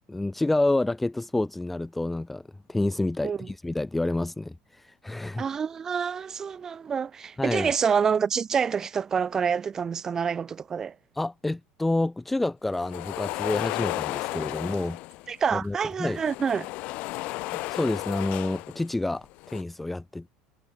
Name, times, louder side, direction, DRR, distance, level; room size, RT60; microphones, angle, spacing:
voice 1, 0.1-2.4 2.7-5.4 7.4-7.7 11.2-15.0 15.5-16.2 17.5-20.3, left 2 dB, 5° left, 0.6 m, -28 dB
voice 2, 5.4-10.9 15.3-16.7, right 6 dB, 20° right, 1.5 m, -27 dB
sound 1, 12.7-15.3 16.0-18.9 19.2-19.6, left 22 dB, 45° left, 1.2 m, -34 dB
cardioid pair, 180°, 3 cm